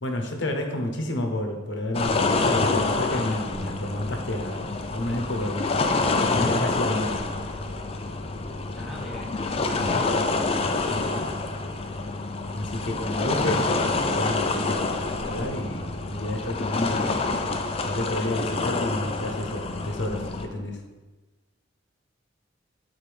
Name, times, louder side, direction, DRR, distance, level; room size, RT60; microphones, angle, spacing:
voice 1, 0.0-5.8 6.1-7.3 10.9-11.4 12.5-13.8 14.0-17.1 17.8-20.8, left 1 dB, 65° left, 3 dB, 0.9 m, -30 dB
sound 1, 1.9-20.5, left 3 dB, 30° left, 0.4 m, -27 dB
voice 2, 8.7-9.2 9.5-10.4, left 1 dB, ahead, -4 dB, 1.2 m, -40 dB
8.0 x 3.9 x 3.3 m, 1.2 s
head